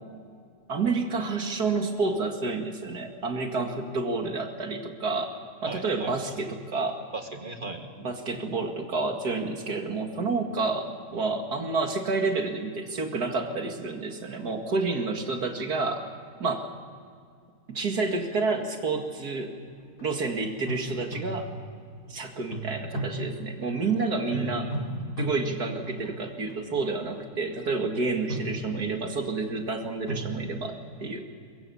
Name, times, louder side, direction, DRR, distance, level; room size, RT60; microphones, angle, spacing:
voice 1, 0.7-5.4 5.6-7.0 8.0-16.1 16.4-16.7 17.7-19.5 20.0-21.5 22.1-24.7 25.2-31.2, right 3 dB, 80° right, 4 dB, 2.6 m, -29 dB
voice 2, 5.7-6.4 7.1-7.9 24.3-25.0, right 2 dB, 35° right, 5 dB, 1.9 m, -37 dB
sound 1, 19.6-20.0 20.7-21.8 22.5-23.9 24.3-26.6 27.1-27.4 28.1-29.2 30.1-30.4, right 1 dB, 80° left, 4.3 m, -35 dB
23.0 x 22.5 x 7.1 m, 2.2 s
omnidirectional pair, 1.7 m